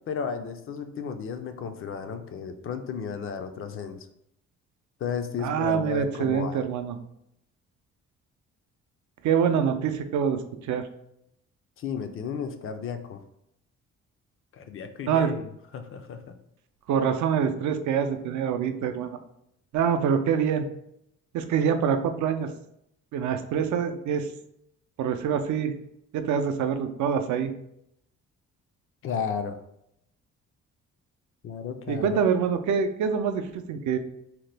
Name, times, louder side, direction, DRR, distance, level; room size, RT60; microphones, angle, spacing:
voice 1, 0.1-4.1 5.0-6.7 11.8-13.2 14.5-15.5 15.7-16.2 29.0-29.6 31.4-32.2, left 6 dB, 45° left, 8 dB, 0.4 m, -33 dB
voice 2, 5.4-7.0 9.2-10.4 10.7-10.9 15.1-15.3 16.9-19.2 19.7-20.7 21.3-22.5 23.1-24.3 25.0-25.7 26.1-27.5 31.9-34.0, right 7 dB, 70° right, 8 dB, 0.4 m, -25 dB
2.8 x 2.1 x 3.2 m, 0.77 s
cardioid pair, 90°, 30 cm